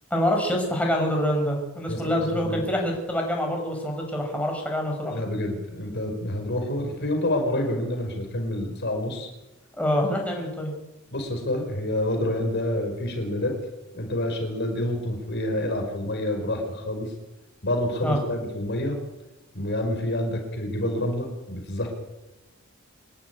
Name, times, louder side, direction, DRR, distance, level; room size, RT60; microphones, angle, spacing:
voice 1, 0.1-5.2 9.8-10.7 18.0-18.2, equal, 5° left, 0 dB, 5.5 m, -26 dB
voice 2, 1.9-2.6 5.1-9.3 11.1-13.5 13.9-17.1 17.6-19.0 19.5-21.9, left 1 dB, 55° left, 3 dB, 5.4 m, -28 dB
26.0 x 12.0 x 9.7 m, 0.99 s
head